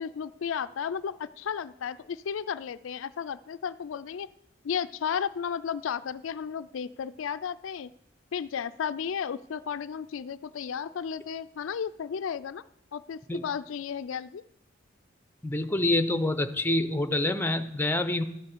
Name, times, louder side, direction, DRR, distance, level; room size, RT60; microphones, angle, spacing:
voice 1, 0.0-4.3 4.6-7.9 8.3-12.6 12.9-14.4, left 7 dB, 75° left, 14 dB, 0.4 m, -33 dB
voice 2, 15.4-18.2, left 1 dB, 10° left, 10 dB, 0.7 m, -26 dB
13.0 x 7.3 x 6.7 m, 0.82 s
head